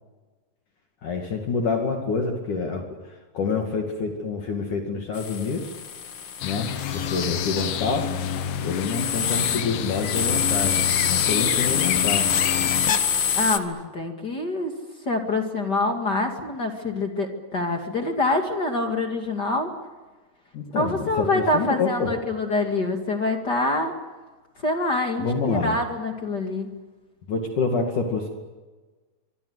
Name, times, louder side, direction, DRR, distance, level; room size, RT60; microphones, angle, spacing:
voice 1, 1.0-5.7 6.4-8.1 8.6-12.3 20.5-22.1 25.2-25.8 27.3-28.3, left 4 dB, 55° left, 3 dB, 3.6 m, -27 dB
sound 1, 5.1-13.6, left 7 dB, 90° left, 1.0 m, -26 dB
sound 2, 6.4-12.9, left 9 dB, 70° left, 3.0 m, -29 dB
voice 2, 13.3-14.7 15.1-19.7 20.7-23.9 24.6-26.7, left 2 dB, 30° left, 4 dB, 2.2 m, -25 dB
25.0 x 24.0 x 8.2 m, 1.3 s
omnidirectional pair, 4.7 m